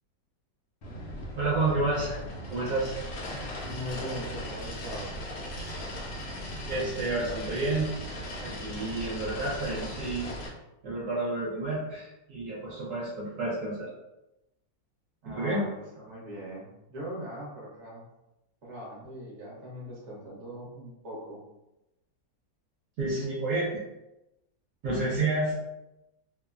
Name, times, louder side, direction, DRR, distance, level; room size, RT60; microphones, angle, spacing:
sound 1, 0.8-10.5, equal, 70° left, 1.0 m, -38 dB
voice 1, 1.4-2.2 2.5-2.9 6.7-7.9 8.4-10.3 10.8-13.9 15.2-15.6 23.0-23.7 24.8-25.6, right 2 dB, 70° right, -7 dB, 1.1 m, -30 dB
voice 2, 3.6-5.1 15.2-18.1 18.6-21.4, equal, 45° right, -5 dB, 1.0 m, -40 dB
3.1 x 2.0 x 2.3 m, 0.93 s
omnidirectional pair, 2.0 m